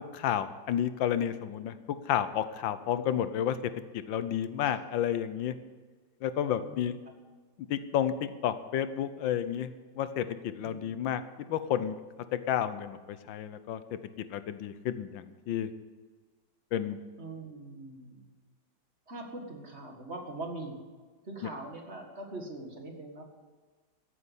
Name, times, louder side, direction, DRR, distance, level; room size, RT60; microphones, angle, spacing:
voice 1, 0.1-1.8 2.1-3.6 3.9-5.5 6.2-7.0 7.7-9.7 10.0-11.2 11.5-11.9 12.3-13.8 14.3-15.7 16.7-17.0, left 10 dB, 85° left, 12 dB, 1.5 m, -31 dB
voice 2, 6.6-6.9 10.6-11.0 17.2-18.3 19.1-20.8 21.2-23.2, right 2 dB, 35° right, 2 dB, 2.1 m, -42 dB
14.5 x 8.3 x 8.2 m, 1.4 s
omnidirectional pair, 2.0 m